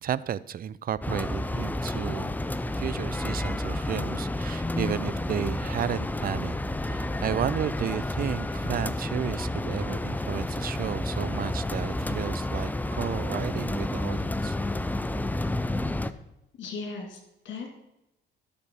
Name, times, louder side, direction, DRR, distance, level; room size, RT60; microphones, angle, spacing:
voice 1, 0.0-2.4 2.7-6.6 6.8-14.6, right 10 dB, 50° right, 18 dB, 0.5 m, -33 dB
sound 1, 1.0-16.1, left 1 dB, 10° left, 0.5 m, -30 dB
voice 2, 16.6-17.7, left 4 dB, 70° left, 3 dB, 3.1 m, -37 dB
12.0 x 6.8 x 4.9 m, 0.89 s
cardioid pair, 90°, 20 cm